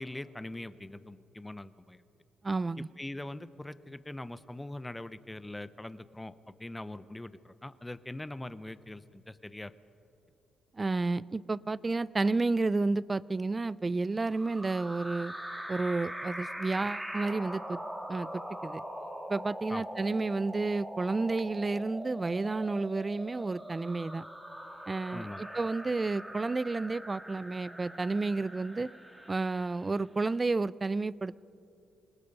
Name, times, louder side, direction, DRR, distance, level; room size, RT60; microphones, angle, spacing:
voice 1, 0.0-2.0 2.8-9.7 19.7-19.8 25.1-25.4, left 1 dB, 10° left, 15 dB, 0.7 m, -42 dB
voice 2, 2.4-2.9 10.8-15.3 15.7-17.8 18.1-18.8 19.3-24.2 24.9-25.3 25.5-28.9 29.3-31.4, right 3 dB, 25° right, 21 dB, 0.4 m, -31 dB
sound 1, 14.3-29.9, equal, 10° right, 2.3 m, -42 dB
27.0 x 18.5 x 5.4 m, 2.7 s
cardioid pair, 90°, 0 cm